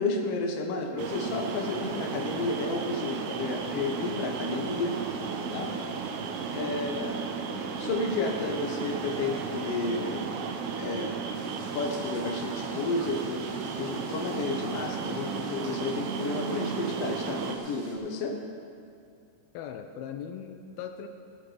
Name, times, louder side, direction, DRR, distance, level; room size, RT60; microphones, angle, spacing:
voice 1, 0.0-5.0 5.5-5.7 6.5-7.2 7.8-10.2 10.8-11.2 11.7-18.4, left 3 dB, 65° left, 2 dB, 1.5 m, -31 dB
sound 1, 1.0-17.6, right 5 dB, 85° right, 2.8 m, -34 dB
sound 2, 11.3-17.9, right 1 dB, 40° right, 2.3 m, -52 dB
voice 2, 19.5-21.1, left 8 dB, 80° left, 6 dB, 2.4 m, -39 dB
18.0 x 9.5 x 5.1 m, 2.4 s
omnidirectional pair, 4.6 m